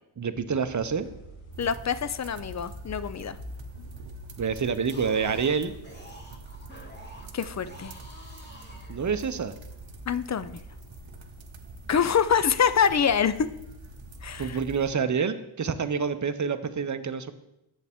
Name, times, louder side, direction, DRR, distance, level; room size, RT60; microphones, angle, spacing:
voice 1, 0.2-1.1 4.4-5.7 8.9-9.5 14.4-17.3, right 6 dB, 35° right, 11 dB, 0.6 m, -27 dB
sound 1, 0.6-14.7, left 1 dB, 90° left, 1.3 m, -47 dB
sound 2, 1.5-14.9, right 4 dB, 65° right, 0.8 m, -47 dB
voice 2, 1.6-3.4 7.3-7.9 10.1-10.6 11.9-13.5 14.2-14.6, left 7 dB, 35° left, 14 dB, 0.4 m, -25 dB
sound 3, 4.8-9.5, left 1 dB, 20° left, 1.5 m, -49 dB
8.3 x 7.1 x 3.6 m, 0.86 s
cardioid pair, 45°, 49 cm